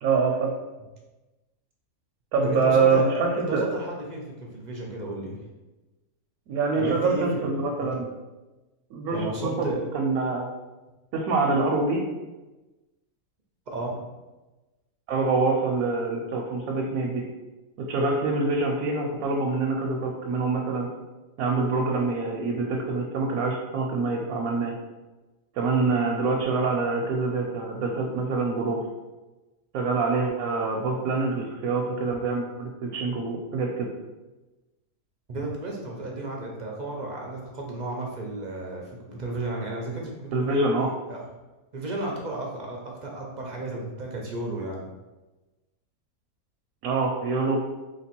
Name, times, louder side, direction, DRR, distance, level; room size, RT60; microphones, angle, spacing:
voice 1, 0.0-0.5 2.3-3.7 6.5-8.1 8.9-9.7 9.9-10.5 11.1-12.0 15.1-17.2 17.8-20.9 21.4-24.8 25.6-28.8 29.7-33.9 40.3-40.9 46.8-47.6, right 3 dB, 80° right, 0 dB, 1.1 m, -25 dB
voice 2, 2.4-5.4 6.7-7.5 7.8-8.0 9.1-9.9 13.7-14.0 35.3-40.7 41.1-41.3 41.7-44.9, right 2 dB, 50° right, -1 dB, 0.5 m, -33 dB
3.1 x 3.0 x 4.4 m, 1.1 s
omnidirectional pair, 1.5 m